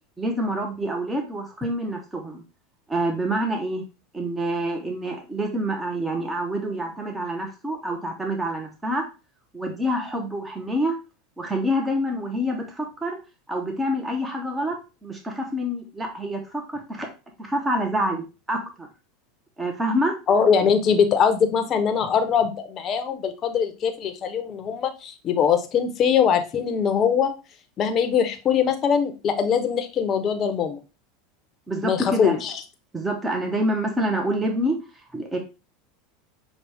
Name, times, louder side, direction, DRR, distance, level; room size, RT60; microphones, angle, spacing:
voice 1, 0.2-2.4 2.9-3.8 4.1-9.0 9.5-10.9 11.4-13.2 13.5-14.8 15.0-17.1 17.4-18.9 19.6-20.1 31.7-32.4 32.9-34.8 35.1-35.4, equal, 10° right, 2 dB, 0.9 m, -27 dB
voice 2, 20.3-27.3 27.8-30.8 31.8-32.5, left 7 dB, 35° left, 6 dB, 0.8 m, -22 dB
6.0 x 2.4 x 3.4 m, 0.30 s
supercardioid pair, 110°, 0 cm